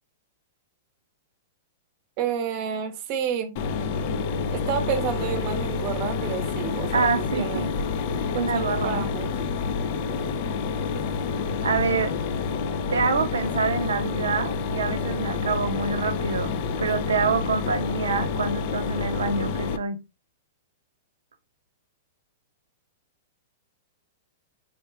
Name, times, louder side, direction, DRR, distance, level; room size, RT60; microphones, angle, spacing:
voice 1, 2.2-3.5 4.5-7.7 8.3-9.3, right 8 dB, 45° right, 0.7 m, -30 dB
Mechanisms, 3.6-19.8, left 5 dB, 50° left, 0.4 m, -28 dB
voice 2, 6.9-7.7 8.3-9.1 11.6-12.1 12.9-20.0, right 5 dB, 90° right, 0.5 m, -26 dB
3.7 x 2.2 x 3.2 m
hypercardioid pair, 125°, 0 cm